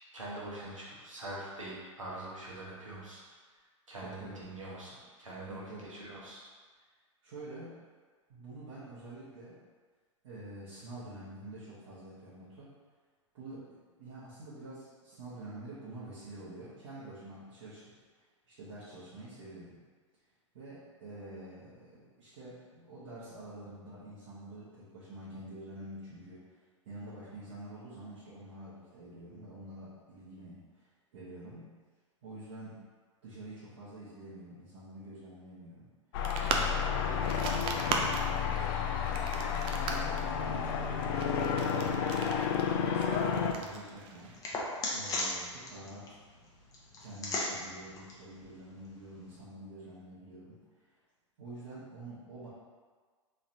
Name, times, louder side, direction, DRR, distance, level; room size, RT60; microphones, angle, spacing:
voice 1, 0.1-3.2 3.9-6.4, right 1 dB, 85° right, -5 dB, 1.1 m, -43 dB
voice 2, 4.0-4.4 5.5-5.9 6.7-6.9 7.2-7.8 8.3-9.6 10.2-12.7 13.3-17.8 18.1-19.8 20.5-31.7 32.2-32.8 33.2-35.9 36.6-39.0 39.8-44.3 44.9-46.2 47.0-50.9 51.4-52.5, right 1 dB, 55° right, -12 dB, 1.2 m, -47 dB
sound 1, 36.1-43.5, left 7 dB, 45° left, 0.4 m, -31 dB
sound 2, 36.2-44.5, right 4 dB, 30° right, 0.4 m, -38 dB
sound 3, 42.6-49.4, left 2 dB, 20° left, 0.8 m, -40 dB
4.0 x 3.3 x 2.6 m, 1.5 s
figure-of-eight pair, 100°, 16 cm